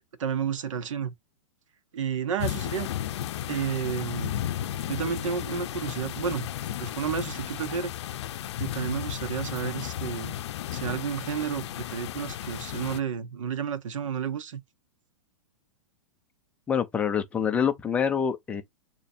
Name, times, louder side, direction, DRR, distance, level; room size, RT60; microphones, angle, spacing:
voice 1, 0.2-1.1 1.9-2.9 3.5-4.4 4.9-6.5 6.8-7.9 8.6-10.3 10.7-14.6, right 7 dB, 80° right, 1.1 m, -31 dB
sound 1, 2.4-13.0, left 11 dB, 60° left, 0.6 m, -34 dB
voice 2, 16.7-18.6, left 7 dB, 10° left, 0.4 m, -26 dB
6.6 x 2.9 x 2.7 m
supercardioid pair, 165°, 16 cm